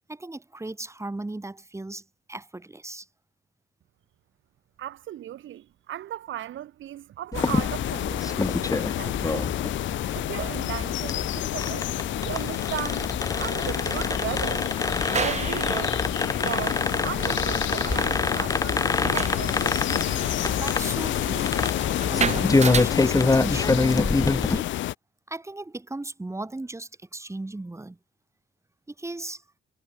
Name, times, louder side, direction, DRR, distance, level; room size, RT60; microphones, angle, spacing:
voice 1, 0.1-3.1 15.0-15.2 16.3-16.5 20.6-21.6 22.1-24.7 25.3-28.0 29.0-29.4, right 2 dB, 15° right, 3.5 m, -36 dB
voice 2, 4.8-9.6 10.1-11.9 12.2-14.7 15.2-16.0 16.4-19.9, right 12 dB, 75° right, 3.8 m, -36 dB
sound 1, 7.3-24.9, left 15 dB, 75° left, 0.6 m, -29 dB
sound 2, 7.3-24.6, left 3 dB, 15° left, 1.4 m, -27 dB
sound 3, 14.7-22.8, right 6 dB, 35° right, 1.2 m, -34 dB
cardioid pair, 90°, 20 cm